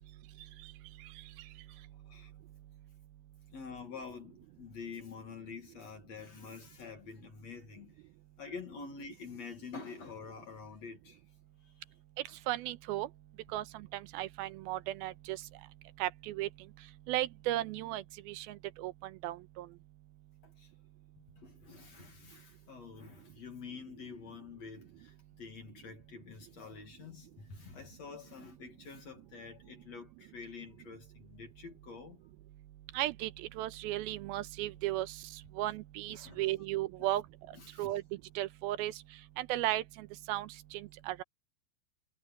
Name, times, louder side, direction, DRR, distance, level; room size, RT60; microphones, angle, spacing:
voice 1, 1.7-2.3 3.5-8.0 8.4-11.2 11.6-11.8 12.3-12.4 20.4-20.7 21.2-32.3 36.1-36.4 37.0-37.1 37.5-38.0, left 5 dB, 50° left, 2.8 m, -48 dB
voice 2, 12.5-13.1 13.5-15.4 16.0-16.5 17.1-19.7 32.9-35.2 35.6-37.2 37.8-38.0 38.4-38.9 39.4-41.2, right 15 dB, 80° right, 2.6 m, -35 dB
omnidirectional pair, 4.5 m